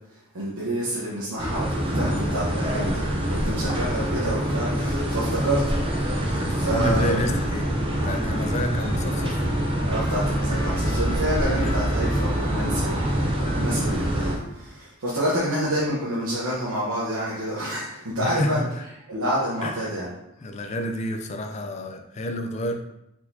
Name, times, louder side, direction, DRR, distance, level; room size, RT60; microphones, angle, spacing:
voice 1, 0.3-5.7 6.0-7.2 8.0-8.1 9.8-18.7 19.1-20.1, right 1 dB, 85° right, -7 dB, 1.0 m, -28 dB
sound 1, 1.4-14.4, right 1 dB, 25° right, 0.6 m, -25 dB
voice 2, 6.4-7.7 8.0-9.4 10.8-11.0 11.6-11.8 18.2-18.8 19.6-19.8 20.4-22.7, left 1 dB, 30° left, 5 dB, 0.4 m, -29 dB
Trumpet, 8.1-14.7, left 2 dB, 60° left, 1.0 m, -44 dB
4.4 x 4.1 x 2.7 m, 0.84 s
head